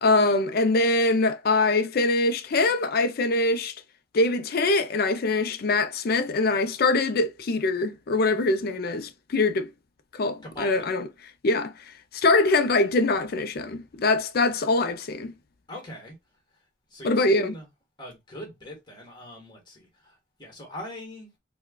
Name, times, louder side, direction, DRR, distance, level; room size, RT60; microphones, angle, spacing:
voice 1, 0.0-3.7 4.1-9.7 10.2-11.1 11.4-11.7 12.1-15.3 17.0-17.5, left 2 dB, 55° left, 0.5 m, -23 dB
voice 2, 10.4-10.9 15.7-16.1 16.9-17.7 18.0-21.3, left 1 dB, 25° left, 1.4 m, -41 dB
4.4 x 2.2 x 2.3 m
head